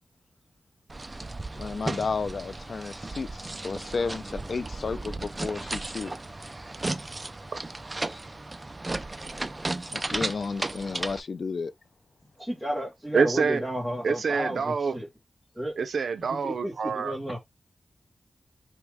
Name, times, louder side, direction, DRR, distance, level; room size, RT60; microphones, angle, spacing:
sound 1, 0.9-11.2, right 2 dB, 25° right, 0.4 m, -35 dB
voice 1, 1.6-6.1 9.9-11.7, left 4 dB, 60° left, 0.5 m, -32 dB
voice 2, 12.4-15.1 15.5-15.7 16.3-17.4, equal, 5° left, 1.7 m, -32 dB
voice 3, 13.1-13.6 14.0-15.0 15.8-17.2, right 5 dB, 85° right, 0.6 m, -26 dB
3.7 x 3.0 x 4.7 m
wide cardioid pair, 125°, 0 cm